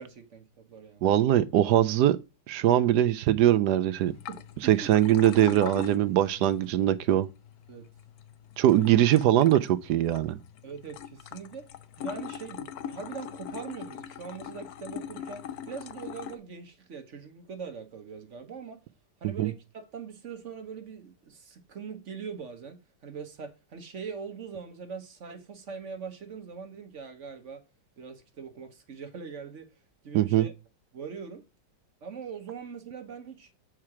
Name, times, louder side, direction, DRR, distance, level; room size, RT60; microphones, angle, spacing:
voice 1, 0.0-1.1 4.3-4.9 7.7-7.9 8.6-8.9 10.6-11.7 12.0-18.8 19.2-27.6 28.0-29.7 30.0-30.5 30.9-31.5 32.0-33.5, right 6 dB, 50° right, 1.2 m, -42 dB
voice 2, 1.0-2.2 2.5-4.1 4.6-7.3 8.6-10.4 19.4-19.5 30.1-30.5, right 12 dB, 75° right, 1.1 m, -22 dB
sound 1, 4.0-16.4, left 9 dB, 70° left, 1.0 m, -42 dB
7.5 x 4.5 x 4.8 m
omnidirectional pair, 1.9 m